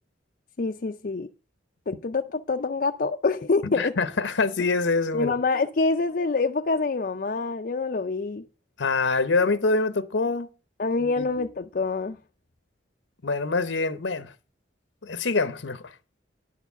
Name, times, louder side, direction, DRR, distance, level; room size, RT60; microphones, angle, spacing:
voice 1, 0.6-1.3 1.9-4.0 5.1-8.5 10.8-12.2, left 3 dB, 50° left, 0.5 m, -26 dB
voice 2, 3.6-5.4 8.8-10.5 11.0-11.3 13.2-14.3 15.0-15.9, left 3 dB, 75° left, 0.8 m, -25 dB
11.0 x 4.6 x 6.9 m
head